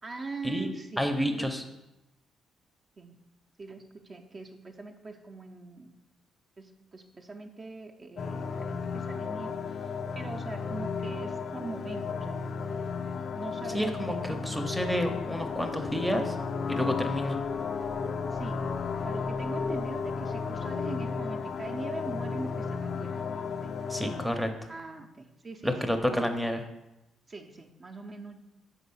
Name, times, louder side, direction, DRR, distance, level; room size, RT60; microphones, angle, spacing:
voice 1, 0.0-1.5 3.0-3.2 3.6-5.9 6.6-12.5 13.4-15.0 18.3-18.7 19.0-23.2 23.6-23.7 24.7-26.3 27.3-28.4, right 3 dB, 35° right, 3 dB, 0.6 m, -42 dB
voice 2, 1.0-1.6 13.7-14.1 14.4-16.4 16.7-17.4 23.9-24.5 25.6-26.6, equal, 5° left, 6 dB, 0.6 m, -29 dB
sound 1, 8.2-24.3, left 5 dB, 50° left, 0.3 m, -33 dB
4.2 x 4.0 x 5.4 m, 0.92 s
cardioid pair, 90°, 0 cm